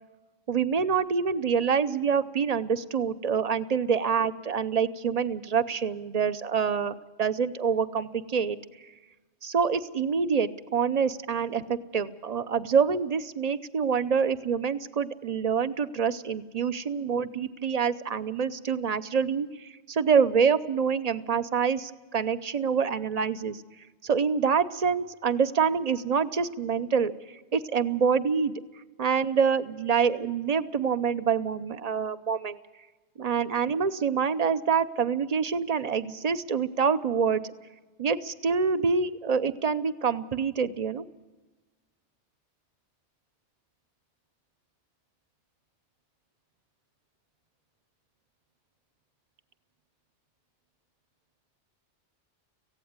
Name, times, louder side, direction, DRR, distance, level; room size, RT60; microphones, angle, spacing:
voice 1, 0.5-8.6 9.4-23.6 24.0-28.5 29.0-32.6 33.2-37.4 38.0-41.0, right 6 dB, 40° right, 14 dB, 0.7 m, -26 dB
17.5 x 16.0 x 9.5 m, 1.2 s
omnidirectional pair, 1.2 m